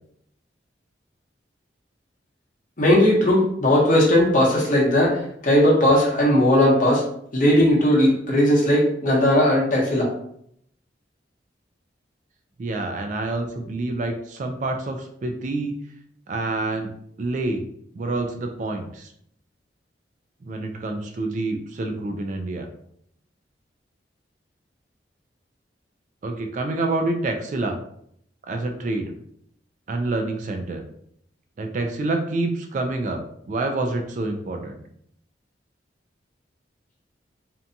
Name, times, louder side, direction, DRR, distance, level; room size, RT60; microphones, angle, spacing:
voice 1, 2.8-7.0 7.3-10.1, left 1 dB, 45° left, -3 dB, 0.8 m, -18 dB
voice 2, 12.6-15.8 16.3-16.9 17.2-17.6 17.9-19.1 20.4-22.7 26.2-27.8 28.5-29.1 29.9-30.8 31.6-34.8, right 2 dB, 45° right, 4 dB, 0.3 m, -27 dB
2.6 x 2.2 x 2.6 m, 0.69 s
head